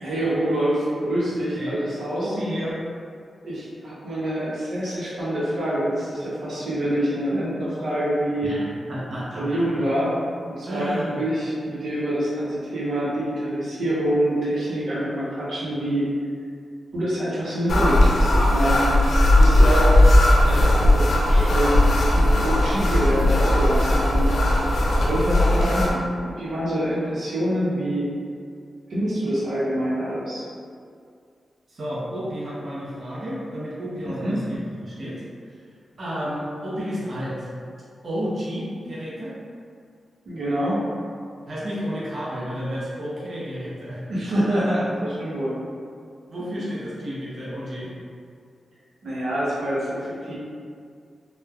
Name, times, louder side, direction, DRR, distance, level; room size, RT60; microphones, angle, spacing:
voice 1, 0.0-2.3 3.4-8.5 9.4-10.1 10.6-16.0 16.9-18.8 19.3-20.0 20.4-24.3 24.9-28.1 28.9-30.5 34.1-34.4 40.3-40.8 44.1-45.5 49.0-50.3, right 1 dB, 85° right, -9 dB, 0.7 m, -26 dB
voice 2, 2.2-2.8 8.4-9.6 10.7-11.2 31.7-35.6 36.0-37.5 38.0-39.3 41.5-44.0 46.3-47.9, equal, 50° right, -8 dB, 0.6 m, -31 dB
sound 1, 17.7-25.9, left 1 dB, 70° left, 0.4 m, -17 dB
3.1 x 2.0 x 2.3 m, 2.2 s
wide cardioid pair, 100°, 0 cm